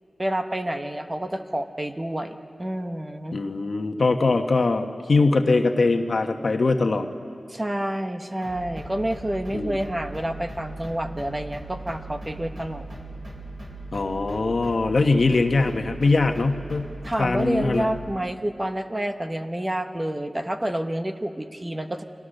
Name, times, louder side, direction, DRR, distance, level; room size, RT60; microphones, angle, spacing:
voice 1, 0.2-3.4 7.5-12.8 17.0-22.0, right 1 dB, 20° right, 6 dB, 1.1 m, -29 dB
voice 2, 3.3-7.1 9.5-9.8 13.9-16.9 17.2-17.9, left 3 dB, 55° left, 6 dB, 1.3 m, -22 dB
sound 1, 8.4-18.1, right 2 dB, 50° right, 5.5 m, -39 dB
29.5 x 24.5 x 6.7 m, 2.5 s
wide cardioid pair, 105°, 0 cm